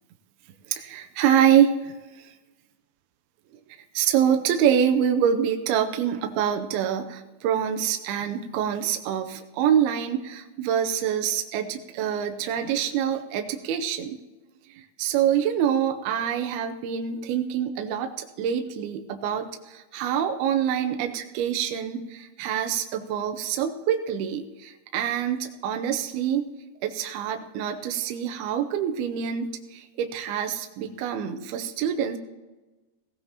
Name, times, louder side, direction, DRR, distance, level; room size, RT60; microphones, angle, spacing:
voice 1, 0.7-2.3 3.9-14.2 14.8-26.4 26.8-32.2, right 9 dB, 80° right, 5 dB, 2.4 m, -26 dB
18.0 x 16.5 x 2.9 m, 1.2 s
omnidirectional pair, 5.1 m